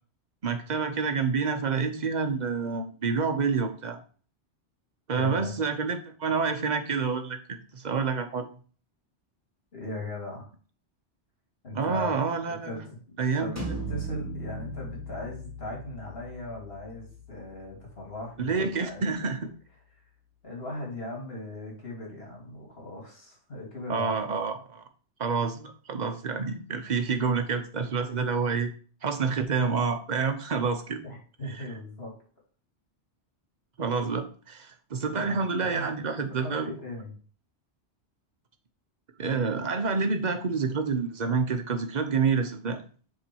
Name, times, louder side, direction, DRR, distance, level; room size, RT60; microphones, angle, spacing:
voice 1, 0.4-4.0 5.1-8.5 11.7-12.8 13.2-13.8 18.4-19.5 23.9-24.8 25.2-28.7 29.0-31.0 31.6-31.7 33.8-36.7 39.2-42.9, right 5 dB, 45° right, 7 dB, 0.9 m, -28 dB
voice 2, 5.1-5.5 9.7-10.5 11.6-12.2 12.5-19.3 20.4-24.5 31.0-32.1 35.0-35.4 35.7-35.9 36.4-37.1, left 1 dB, 55° left, -2 dB, 2.8 m, -39 dB
sound 1, 13.6-19.2, right 1 dB, 15° right, 1.7 m, -39 dB
7.1 x 3.9 x 4.5 m, 0.41 s
omnidirectional pair, 1.2 m